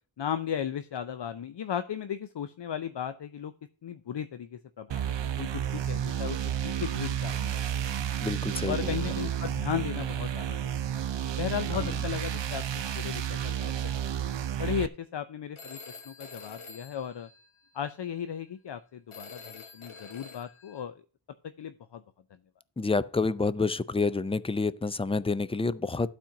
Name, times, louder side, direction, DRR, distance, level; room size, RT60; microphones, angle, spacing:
voice 1, 0.2-3.5 3.8-6.4 6.6-8.1 8.6-10.9 11.4-12.6 12.9-13.7 14.6-17.3 17.7-20.9 21.6-22.0, left 8 dB, 60° left, 0.6 m, -36 dB
sound 1, 4.9-14.9, right 9 dB, 65° right, 0.6 m, -31 dB
voice 2, 8.2-9.0 11.7-12.0 22.8-26.1, left 3 dB, 15° left, 0.4 m, -28 dB
Telephone, 15.6-17.9 19.1-20.8, left 4 dB, 85° left, 1.4 m, -48 dB
12.0 x 4.4 x 5.8 m
wide cardioid pair, 70°, 48 cm